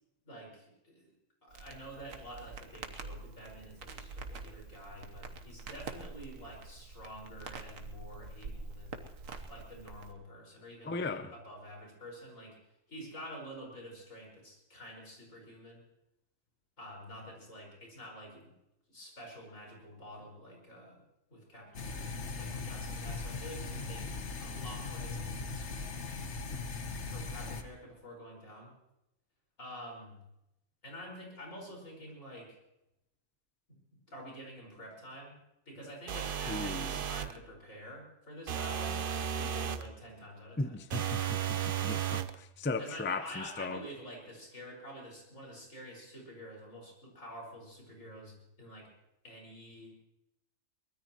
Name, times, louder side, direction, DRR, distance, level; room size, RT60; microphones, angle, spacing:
voice 1, 0.2-1.1 1.4-9.0 9.5-12.6 12.9-15.8 16.8-18.5 18.9-21.0 21.3-24.1 24.4-25.9 27.0-28.7 29.6-30.2 30.8-32.6 33.7-33.8 34.1-35.4 35.7-39.0 39.3-40.8 42.8-48.9 49.2-50.0, equal, 80° left, 5.7 m, -48 dB
Crackle, 1.5-10.1, right 4 dB, 85° right, 1.6 m, -46 dB
voice 2, 10.8-11.3 36.5-36.9 40.6-43.8, left 3 dB, 15° left, 0.5 m, -37 dB
sound 1, 21.7-27.6, left 4 dB, 60° left, 1.5 m, -39 dB
sound 2, 36.1-37.4 38.5-39.9 40.9-42.3, right 9 dB, 50° right, 0.7 m, -34 dB
23.0 x 20.0 x 3.1 m
omnidirectional pair, 1.3 m